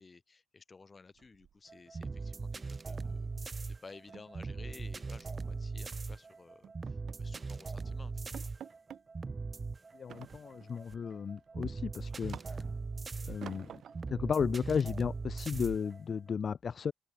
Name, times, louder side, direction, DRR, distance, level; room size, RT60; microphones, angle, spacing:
voice 1, 0.0-3.5 3.8-8.5, left 4 dB, 30° left, 0.9 m, -55 dB
sound 1, 1.2-2.0 2.3-2.5 2.8-3.0 3.3-3.4 3.8-5.4 5.9-6.2 6.6-7.6 7.9-8.0 8.3-9.1 10.1-10.8 11.3-12.9 13.4-14.2, right 9 dB, 65° right, 2.2 m, -51 dB
sound 2, 1.7-16.4, right 4 dB, 30° right, 0.5 m, -40 dB
voice 2, 9.9-12.6 13.3-13.7 14.1-16.9, left 6 dB, 45° left, 0.3 m, -34 dB
cardioid pair, 90°, 0 cm